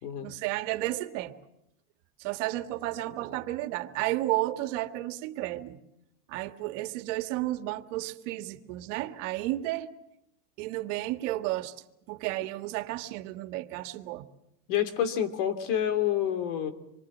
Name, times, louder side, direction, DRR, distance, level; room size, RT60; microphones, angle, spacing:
voice 1, 0.2-1.3 2.2-5.8 6.3-9.9 10.6-11.7 12.1-14.3, right 16 dB, 75° right, 8 dB, 1.9 m, -32 dB
voice 2, 14.7-16.7, left 10 dB, 70° left, 9 dB, 3.1 m, -28 dB
27.0 x 23.0 x 7.3 m, 0.83 s
supercardioid pair, 150°, 38 cm